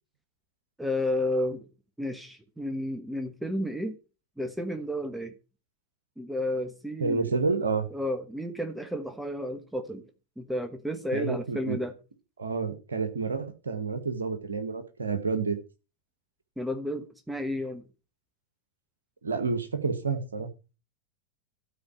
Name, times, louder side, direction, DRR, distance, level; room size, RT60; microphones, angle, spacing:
voice 1, 0.8-1.7 2.0-4.0 4.4-5.3 6.2-7.3 7.9-10.0 10.4-11.9 16.6-17.8, left 1 dB, 5° right, 1.2 m, -32 dB
voice 2, 7.0-7.9 11.1-11.8 12.4-15.6 19.2-20.5, right 4 dB, 70° right, 1.7 m, -29 dB
12.5 x 4.9 x 7.4 m
figure-of-eight pair, 90°, 0 cm